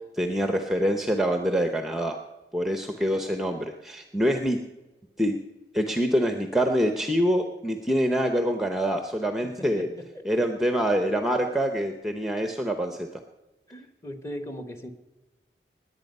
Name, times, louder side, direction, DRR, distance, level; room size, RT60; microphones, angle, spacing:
voice 1, 0.1-2.2 2.5-4.6 5.2-5.4 5.7-9.9 10.2-13.1, equal, ahead, 5 dB, 0.7 m, -25 dB
voice 2, 9.4-10.5 11.0-11.1 13.7-14.9, equal, 15° left, 7 dB, 1.2 m, -39 dB
20.0 x 8.8 x 5.4 m, 1.1 s
head